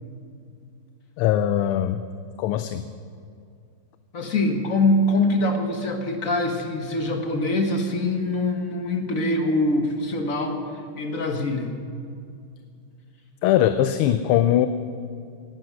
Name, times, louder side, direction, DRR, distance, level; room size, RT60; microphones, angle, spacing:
voice 1, 1.2-2.0 2.4-2.8 13.4-14.7, left 11 dB, 85° left, 10 dB, 1.5 m, -20 dB
voice 2, 4.1-10.6 11.0-11.7, left 2 dB, 40° left, 4 dB, 1.6 m, -23 dB
18.0 x 12.0 x 6.2 m, 2.3 s
omnidirectional pair, 2.4 m